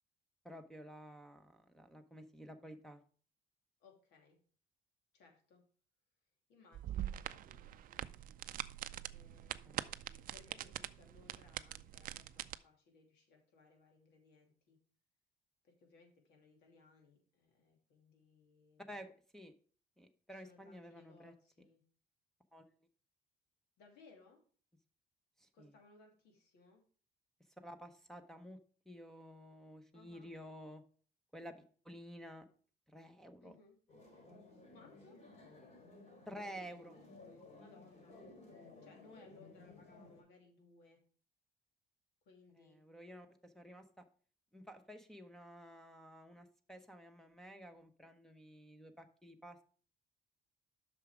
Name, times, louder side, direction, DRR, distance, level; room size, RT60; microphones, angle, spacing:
voice 1, 0.4-3.0 9.6-9.8 18.9-19.5 20.0-21.3 22.5-22.8 25.4-25.7 27.6-28.6 28.9-30.8 31.3-31.6 31.8-32.4 32.9-33.5 36.3-37.0 42.5-44.0 44.5-49.6, equal, 5° left, 3 dB, 0.8 m, -52 dB
voice 2, 3.8-4.4 5.1-5.6 6.5-7.1 7.4-8.1 9.1-14.8 15.6-19.0 20.3-21.8 23.8-24.4 25.5-26.8 29.9-30.3 33.4-33.8 34.7-35.2 37.6-38.2 38.8-41.0 42.2-42.8, left 3 dB, 80° left, 2 dB, 2.7 m, -64 dB
sound 1, 6.7-12.5, right 12 dB, 55° right, 0.4 m, -44 dB
sound 2, 33.9-40.2, left 2 dB, 40° left, 4.3 m, -57 dB
8.1 x 6.1 x 5.0 m, 0.43 s
cardioid pair, 110°, 17 cm